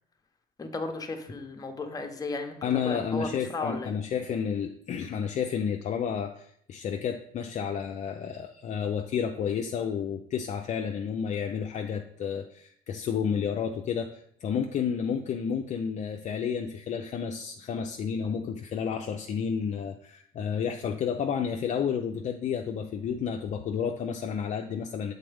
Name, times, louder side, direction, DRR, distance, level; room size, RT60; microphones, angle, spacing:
voice 1, 0.6-3.9, left 3 dB, 20° left, 4 dB, 0.8 m, -35 dB
voice 2, 2.6-25.1, left 7 dB, 45° left, 3 dB, 0.4 m, -31 dB
7.4 x 3.9 x 3.4 m, 0.65 s
cardioid pair, 110°, 17 cm